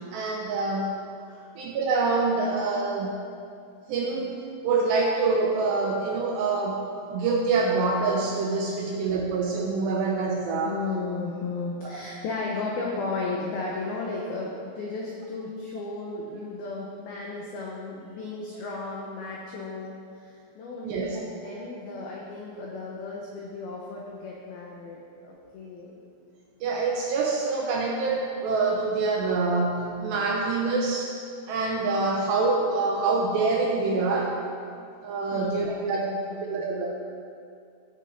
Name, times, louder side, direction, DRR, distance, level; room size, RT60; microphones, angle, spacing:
voice 1, 0.1-0.9 1.6-3.3 3.9-4.3 4.6-6.8 7.1-10.8 20.8-21.2 26.6-31.1 31.5-34.4 35.0-36.1 36.4-36.9, right 3 dB, 80° right, -1 dB, 2.6 m, -26 dB
voice 2, 1.2-1.5 10.7-26.0 35.3-36.9, left 3 dB, 85° left, -3 dB, 2.1 m, -35 dB
15.0 x 6.5 x 5.3 m, 2.4 s
omnidirectional pair, 5.8 m